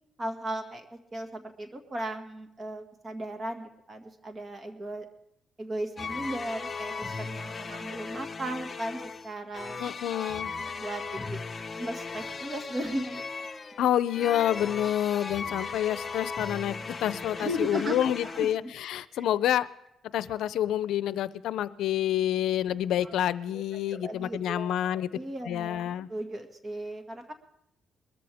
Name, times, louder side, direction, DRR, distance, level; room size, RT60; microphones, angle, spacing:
voice 1, 0.2-5.1 5.6-9.8 10.6-11.4 11.8-13.2 17.4-18.5 19.1-19.2 23.0-23.1 23.5-23.6 23.9-27.3, right 1 dB, 35° right, 5 dB, 2.0 m, -36 dB
sound 1, 6.0-18.6, left 4 dB, 30° left, 0.9 m, -37 dB
voice 2, 9.8-10.5 13.8-16.7 17.0-19.7 20.1-25.1 25.5-26.1, left 11 dB, 80° left, 16 dB, 0.5 m, -28 dB
21.5 x 14.0 x 3.5 m, 0.80 s
cardioid pair, 90°, 0 cm